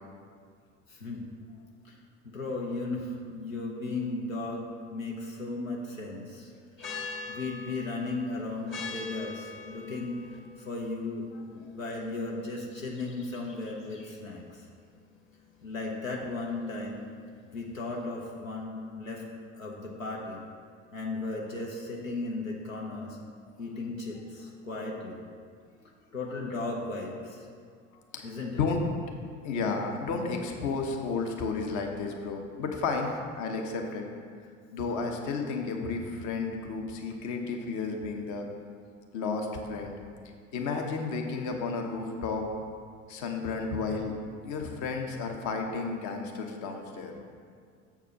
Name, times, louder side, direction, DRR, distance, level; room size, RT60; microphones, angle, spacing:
voice 1, 0.9-1.3 1.8-2.0 2.2-6.5 7.3-10.2 10.6-14.7 15.6-17.0 17.4-19.2 19.5-20.4 20.9-23.2 23.6-25.2 26.1-27.5 28.2-28.6, left 2 dB, 85° left, -1 dB, 0.8 m, -36 dB
sound 1, 6.8-18.0, left 4 dB, 30° left, 1.2 m, -45 dB
voice 2, 28.5-28.8 29.4-34.0 34.7-38.4 39.1-39.9 40.5-42.5 43.1-44.1 44.4-47.1, left 4 dB, 50° left, 3 dB, 1.0 m, -32 dB
7.0 x 4.7 x 5.8 m, 2.1 s
figure-of-eight pair, 65°, 39 cm